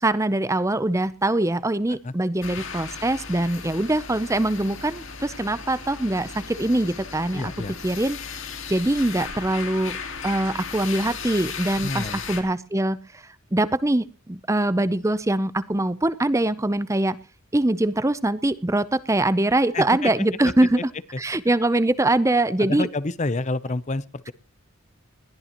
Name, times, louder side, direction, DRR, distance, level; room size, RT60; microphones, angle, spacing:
voice 1, 0.0-7.5 7.8-8.2 8.7-10.0 10.2-13.2 13.5-17.2 17.5-20.9 21.2-22.9, right 1 dB, 15° right, 16 dB, 0.6 m, -23 dB
sound 1, 2.4-12.4, left 5 dB, 60° left, 2.9 m, -36 dB
voice 2, 7.3-7.7 11.8-12.2 19.7-20.1 22.6-24.3, left 2 dB, 30° left, 17 dB, 0.6 m, -28 dB
21.0 x 13.5 x 3.0 m, 0.34 s
head